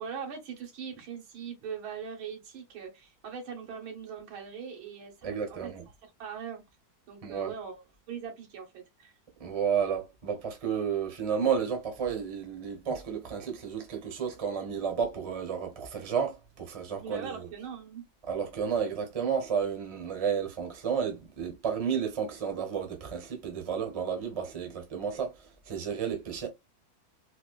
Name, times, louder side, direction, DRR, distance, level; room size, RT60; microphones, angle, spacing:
voice 1, 0.0-5.7 6.2-6.6 7.1-9.1 17.0-18.0, right 7 dB, 90° right, 2.1 m, -41 dB
voice 2, 5.2-5.8 7.2-7.5 9.4-17.5 18.3-26.5, right 7 dB, 30° right, 0.6 m, -32 dB
4.3 x 2.3 x 2.3 m
omnidirectional pair, 2.2 m